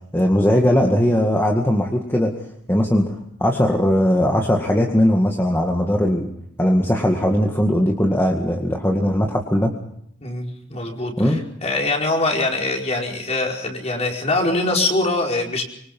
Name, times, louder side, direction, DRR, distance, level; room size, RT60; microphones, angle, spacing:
voice 1, 0.1-2.3 2.7-3.1 3.4-6.3 6.6-9.7 11.2-11.4, equal, 10° left, 1 dB, 2.0 m, -19 dB
voice 2, 10.2-15.6, left 2 dB, 35° left, 0 dB, 5.0 m, -23 dB
25.5 x 25.0 x 5.5 m, 0.70 s
head